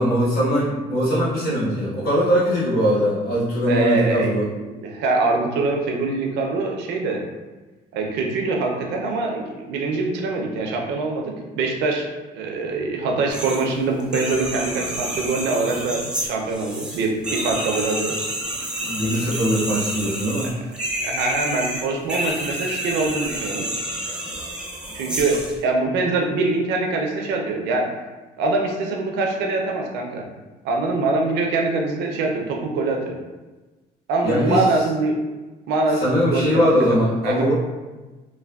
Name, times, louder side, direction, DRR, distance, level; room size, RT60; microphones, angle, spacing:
voice 1, 0.0-4.5 18.8-20.5 34.2-34.6 36.0-37.5, equal, 65° left, -10 dB, 1.4 m, -21 dB
voice 2, 3.7-4.3 4.8-7.2 7.9-12.1 12.3-18.1 21.0-23.6 24.9-25.4 25.6-27.9 28.4-30.2 30.6-33.1 34.1-35.1 35.7-36.7 37.2-37.5, right 3 dB, 85° right, 1 dB, 0.5 m, -23 dB
sound 1, 13.3-13.7 14.0-25.6, right 1 dB, 5° right, 0.6 m, -29 dB
3.3 x 2.2 x 2.3 m, 1.2 s
cardioid pair, 110°, 17 cm